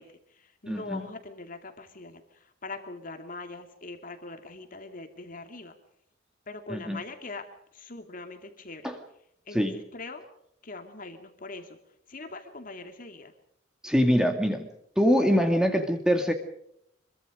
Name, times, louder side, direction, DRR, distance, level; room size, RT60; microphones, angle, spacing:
voice 1, 0.0-5.7 6.5-8.9 9.5-10.2 10.6-11.8 12.1-13.3, left 3 dB, 45° left, 5 dB, 2.6 m, -42 dB
voice 2, 0.7-1.1 6.7-7.0 8.8-9.0 9.5-9.8 13.8-14.7 15.0-16.3, equal, 5° right, 5 dB, 2.1 m, -24 dB
26.0 x 23.0 x 5.1 m, 0.74 s
head